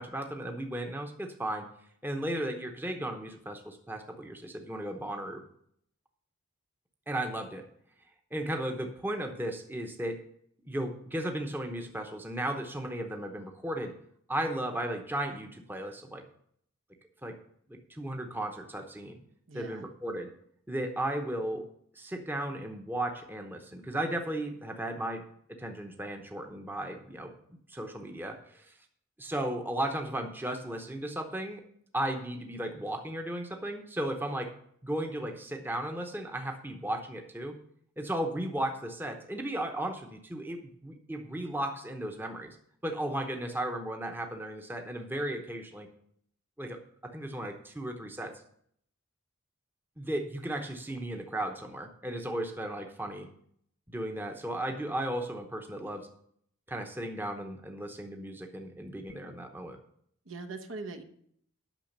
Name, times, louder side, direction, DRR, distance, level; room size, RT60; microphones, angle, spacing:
voice 1, 0.0-1.7 2.0-5.4 7.1-7.6 8.3-10.2 10.6-13.9 14.3-16.2 17.2-17.3 17.7-19.2 19.5-20.3 20.7-21.7 22.0-25.2 25.5-27.3 27.7-28.7 29.2-31.6 31.9-34.5 34.8-37.6 38.0-42.6 42.8-45.9 46.6-48.3 50.0-53.3 53.9-56.1 56.7-59.8, right 1 dB, 10° right, 4 dB, 0.8 m, -35 dB
voice 2, 19.5-19.9 60.2-61.0, right 3 dB, 70° right, 4 dB, 1.0 m, -41 dB
9.0 x 6.3 x 6.6 m, 0.67 s
head